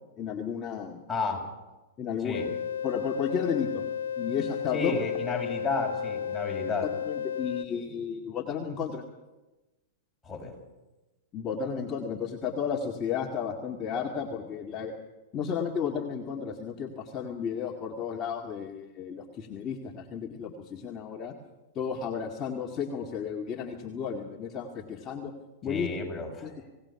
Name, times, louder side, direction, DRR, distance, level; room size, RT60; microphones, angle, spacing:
voice 1, 0.2-1.0 2.0-2.5 2.8-3.8 4.2-5.0 7.0-9.0 11.3-14.9 15.3-21.3 21.7-25.3 25.6-25.9 26.4-26.5, left 7 dB, 30° left, 1 dB, 2.2 m, -33 dB
voice 2, 1.1-1.4 2.2-2.5 4.7-6.9 10.2-10.5 25.7-26.5, left 4 dB, 10° left, -1 dB, 7.5 m, -32 dB
sound 1, 2.3-7.6, left 8 dB, 75° left, 0.7 m, -33 dB
27.0 x 18.0 x 6.0 m, 1.1 s
hypercardioid pair, 110°, 0 cm